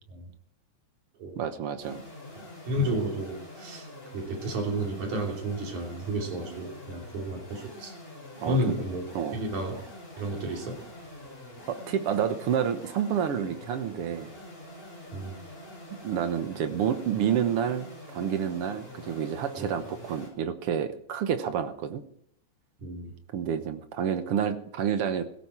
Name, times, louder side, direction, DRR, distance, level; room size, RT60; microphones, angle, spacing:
voice 1, 1.4-2.0 6.5-6.6 8.4-8.7 9.1-9.4 11.7-14.3 16.0-22.0 23.3-25.3, right 8 dB, 60° right, 9 dB, 1.7 m, -29 dB
sound 1, 1.8-20.3, left 1 dB, 15° left, 5.7 m, -46 dB
voice 2, 2.7-3.9 4.1-7.9 8.5-9.1 9.3-9.8 10.2-10.8 15.1-15.4 19.6-19.8 22.8-23.2, right 1 dB, 80° right, 0 dB, 4.6 m, -32 dB
17.0 x 14.0 x 4.4 m, 0.70 s
omnidirectional pair, 3.4 m